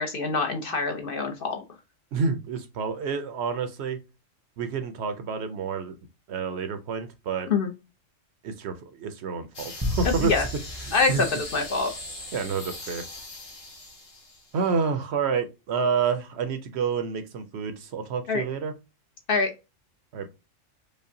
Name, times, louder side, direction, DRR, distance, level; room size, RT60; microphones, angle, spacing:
voice 1, 0.0-1.6 7.5-7.7 10.3-10.4 10.9-11.9 18.3-18.4 19.3-19.5, left 4 dB, 55° left, 4 dB, 0.7 m, -25 dB
voice 2, 2.1-4.0 4.6-6.0 6.3-7.5 8.4-10.5 10.8-11.2 12.3-13.1 14.5-18.7 20.1-20.4, right 5 dB, 65° right, 8 dB, 0.7 m, -29 dB
sound 1, 9.5-14.7, left 2 dB, 75° left, 2.0 m, -40 dB
sound 2, 9.8-12.3, left 1 dB, 25° right, 0.3 m, -33 dB
5.0 x 2.1 x 2.6 m, 0.26 s
omnidirectional pair, 1.3 m